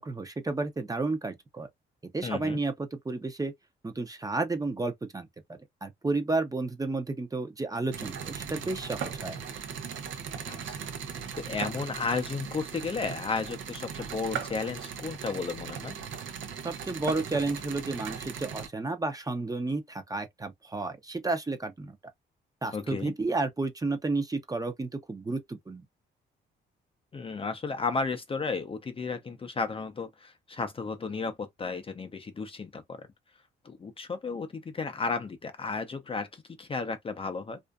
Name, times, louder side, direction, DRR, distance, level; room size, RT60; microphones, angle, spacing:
voice 1, 0.0-1.7 2.1-3.5 3.8-5.3 5.8-9.4 16.6-22.0 22.6-25.8, right 3 dB, 20° right, 0.6 m, -31 dB
voice 2, 2.2-2.6 10.5-10.8 11.3-15.9 22.7-23.1 27.1-33.1 33.6-37.6, left 4 dB, 25° left, 0.5 m, -33 dB
sound 1, 7.9-18.7, right 7 dB, 75° right, 0.7 m, -38 dB
2.5 x 2.4 x 2.2 m
cardioid pair, 90°, 20 cm